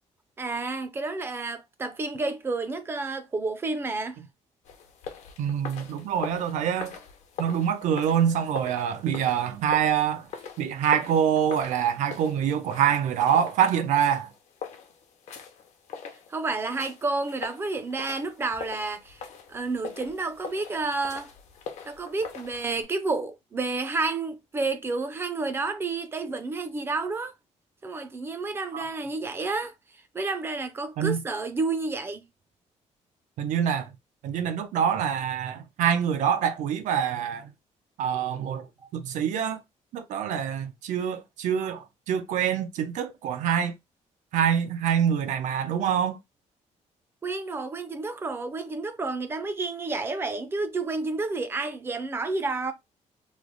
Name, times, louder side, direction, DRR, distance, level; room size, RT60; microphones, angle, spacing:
voice 1, 0.4-4.2 16.3-19.2 19.5-21.3 21.9-27.3 27.8-29.7 30.1-32.3 47.2-52.7, right 3 dB, 20° right, 0.4 m, -30 dB
sound 1, 4.6-22.8, left 6 dB, 65° left, 0.7 m, -42 dB
voice 2, 5.4-7.0 7.4-10.3 10.6-14.3 28.7-28.8 31.0-31.2 33.4-33.9 34.2-37.5 38.0-38.7 38.9-39.6 39.9-43.7 44.3-46.2, right 8 dB, 90° right, 0.6 m, -25 dB
3.1 x 2.0 x 3.8 m
cardioid pair, 175°, 12 cm